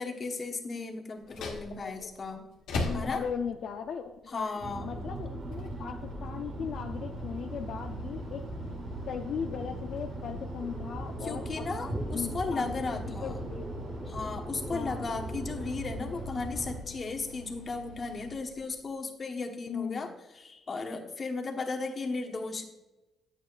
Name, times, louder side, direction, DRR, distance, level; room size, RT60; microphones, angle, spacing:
voice 1, 0.0-2.4 2.9-3.2 4.3-4.9 11.2-13.4 14.1-20.1 20.3-22.6, left 3 dB, 40° left, 3 dB, 1.2 m, -35 dB
sound 1, 1.2-19.0, left 3 dB, 90° left, 1.5 m, -44 dB
voice 2, 1.7-2.3 2.7-4.5 4.8-8.4 9.1-11.6 12.1-13.7 14.7-15.1 19.7-20.1, left 7 dB, 70° left, 4 dB, 0.5 m, -38 dB
sound 2, 4.6-16.8, right 2 dB, 50° right, 1.2 m, -39 dB
sound 3, 10.6-15.7, equal, 15° right, 1.0 m, -43 dB
9.4 x 8.1 x 2.5 m, 1.0 s
cardioid pair, 90°, 0 cm